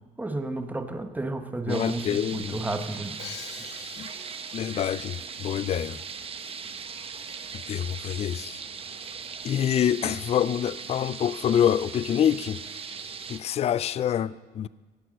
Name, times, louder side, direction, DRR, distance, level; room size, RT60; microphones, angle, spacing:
voice 1, 0.2-3.1, right 2 dB, 10° right, 1.1 m, -32 dB
voice 2, 1.7-2.6 4.0-4.1 4.5-6.0 7.5-8.6 9.4-12.6 13.3-14.7, left 9 dB, 40° left, 0.4 m, -26 dB
sound 1, 1.7-13.4, right 6 dB, 35° right, 0.9 m, -39 dB
Crash cymbal, 3.2-5.0, left 11 dB, 75° left, 0.8 m, -45 dB
17.0 x 8.1 x 6.4 m
cardioid pair, 110°, 17 cm